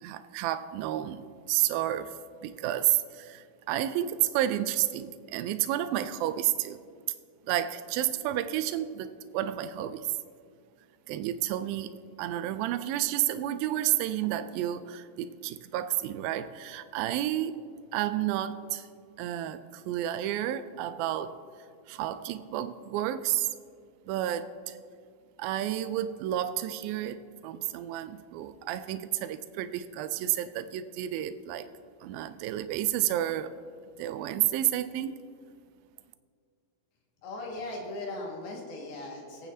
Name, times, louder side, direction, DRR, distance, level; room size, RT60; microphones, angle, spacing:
voice 1, 0.0-6.8 7.5-10.2 11.1-11.9 12.2-17.6 17.9-18.9 19.2-21.4 21.9-23.5 24.1-24.8 25.4-31.7 32.0-33.5 34.0-35.2, right 12 dB, 80° right, 11 dB, 2.3 m, -31 dB
voice 2, 37.2-39.5, left 2 dB, 90° left, -2 dB, 3.7 m, -38 dB
23.0 x 9.1 x 2.7 m, 2.1 s
omnidirectional pair, 4.3 m